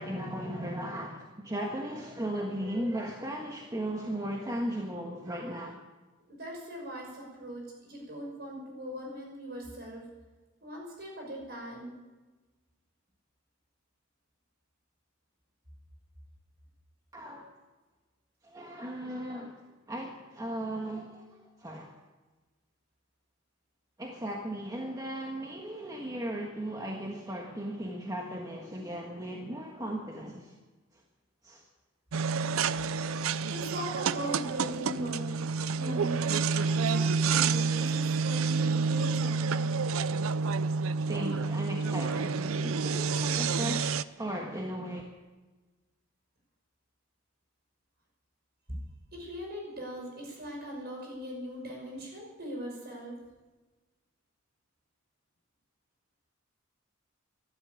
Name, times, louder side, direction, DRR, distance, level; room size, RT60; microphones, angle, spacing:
voice 1, 0.0-5.7 17.1-17.5 18.4-21.9 24.0-30.5 31.4-31.6 33.0-33.4 41.1-45.0, right 1 dB, 20° right, 1 dB, 1.4 m, -37 dB
voice 2, 6.3-10.1 10.6-12.0 33.5-35.3 35.7-39.7 49.1-53.2, equal, 50° right, 0 dB, 5.7 m, -40 dB
sound 1, 32.1-44.0, right 5 dB, 75° right, 0.5 m, -29 dB
13.0 x 11.5 x 9.5 m, 1.2 s
head